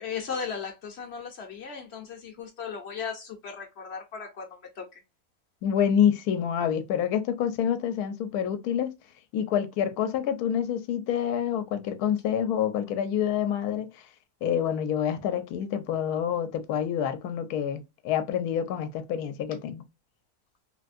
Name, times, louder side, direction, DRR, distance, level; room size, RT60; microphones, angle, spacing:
voice 1, 0.0-5.0, left 6 dB, 55° left, 0.8 m, -37 dB
voice 2, 5.6-8.9 9.3-14.1 14.4-19.8, left 9 dB, 80° left, 1.1 m, -27 dB
3.4 x 2.5 x 2.4 m
omnidirectional pair, 1.6 m